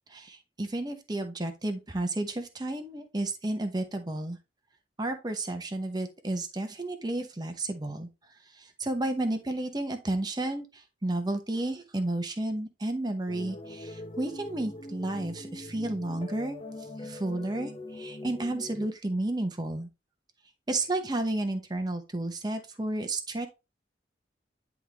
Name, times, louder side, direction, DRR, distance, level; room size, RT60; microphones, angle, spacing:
voice 1, 0.1-4.4 5.0-8.1 8.5-16.6 17.0-19.9 20.7-23.5, right 2 dB, 25° right, 5 dB, 0.9 m, -32 dB
sound 1, 13.3-18.9, left 2 dB, 30° left, 0.7 m, -42 dB
10.0 x 3.7 x 3.0 m, 0.26 s
head